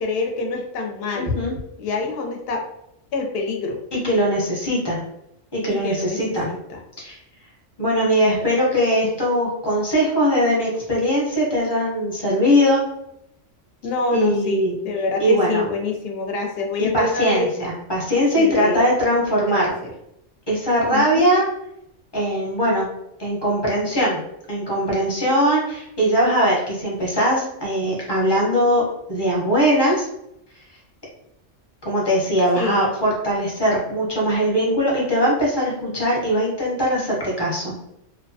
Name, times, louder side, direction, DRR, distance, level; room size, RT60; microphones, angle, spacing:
voice 1, 0.0-1.4 1.8-2.6 3.1-3.8 5.7-6.8 13.8-17.5 18.4-18.8 19.5-19.9 20.9-21.3 32.6-32.9, left 3 dB, 60° left, 2 dB, 0.7 m, -26 dB
voice 2, 1.1-1.5 3.9-5.0 5.5-6.5 7.0-7.2 7.8-12.8 14.1-14.8 15.2-15.6 16.8-19.7 20.5-21.5 22.1-22.9 23.2-24.2 24.5-30.1 31.8-37.7, equal, 25° left, -4 dB, 0.7 m, -20 dB
2.7 x 2.1 x 2.6 m, 0.80 s
omnidirectional pair, 1.3 m